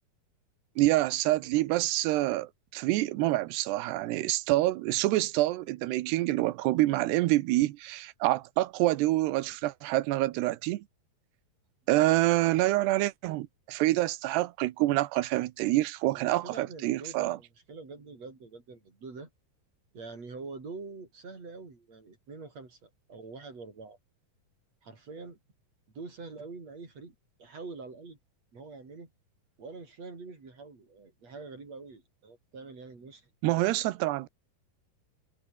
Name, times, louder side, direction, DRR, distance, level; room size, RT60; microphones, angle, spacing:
voice 1, 0.8-10.8 11.9-17.4 33.4-34.3, right 17 dB, 90° right, 3.1 m, -27 dB
voice 2, 16.1-19.3 19.9-24.0 24.8-25.4 25.9-28.2 28.5-29.1 29.6-33.7, right 4 dB, 40° right, 6.7 m, -45 dB
omnidirectional pair, 4.7 m